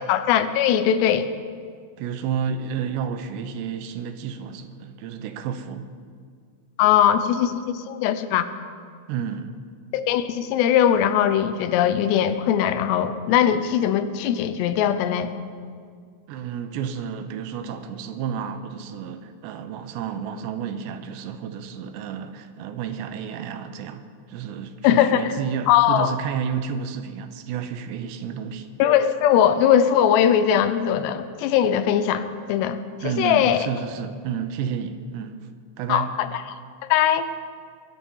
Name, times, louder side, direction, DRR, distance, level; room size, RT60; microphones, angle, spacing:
voice 1, 0.1-1.3 6.8-8.5 9.9-15.3 24.8-25.3 25.7-26.1 28.8-33.7 35.9-36.4 36.9-37.3, left 9 dB, 80° left, 11 dB, 2.9 m, -20 dB
voice 2, 2.0-5.9 9.1-9.5 16.3-28.7 33.0-35.4 35.8-36.1, right 7 dB, 85° right, 9 dB, 3.0 m, -31 dB
22.0 x 10.5 x 5.5 m, 2.1 s
omnidirectional pair, 4.9 m